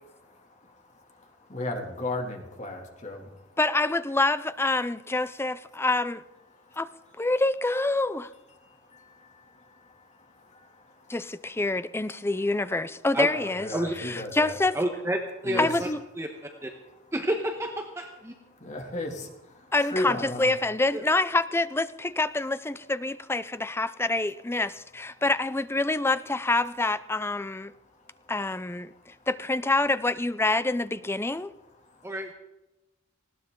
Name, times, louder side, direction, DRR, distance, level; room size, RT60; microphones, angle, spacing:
voice 1, 0.0-3.6 6.5-7.3 8.6-11.2 11.6-11.7 13.3-14.6 15.4-15.9 16.8-17.1 18.5-20.5 25.1-25.2 27.7-28.3 28.9-29.3 31.8-32.1, left 2 dB, 35° left, 2 dB, 2.6 m, -37 dB
voice 2, 3.6-6.2 6.8-6.9 7.2-8.3 11.1-13.7 14.0-14.8 15.6-16.0 19.7-27.7 28.3-28.9 29.3-31.5, left 2 dB, 10° left, 14 dB, 0.5 m, -26 dB
voice 3, 14.7-15.9 16.2-16.3 16.6-16.7 17.1-18.3 20.9-21.0 32.0-32.3, right 1 dB, 15° right, 3 dB, 1.2 m, -29 dB
19.5 x 17.0 x 3.8 m, 0.97 s
head